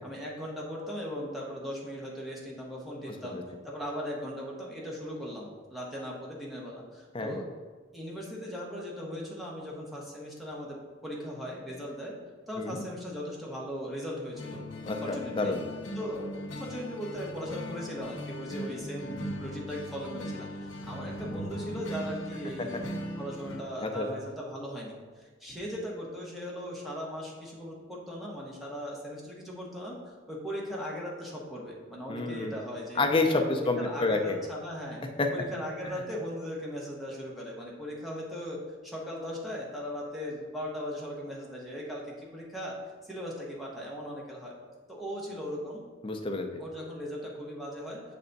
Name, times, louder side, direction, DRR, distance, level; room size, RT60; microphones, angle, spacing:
voice 1, 0.0-7.5 7.9-12.1 12.5-14.6 15.0-15.6 15.9-22.8 23.2-33.1 33.5-35.0 35.3-44.5 44.9-45.8 46.6-48.0, equal, ahead, -4 dB, 1.0 m, -38 dB
sound 1, 14.3-23.6, equal, 70° left, 0.8 m, -39 dB
voice 2, 14.9-15.6 22.6-22.8 23.8-24.2 32.1-32.6 33.0-34.4 35.2-35.3 35.8-35.9 46.0-46.6, left 3 dB, 25° left, 4 dB, 0.5 m, -29 dB
7.0 x 3.4 x 4.0 m, 1.5 s
head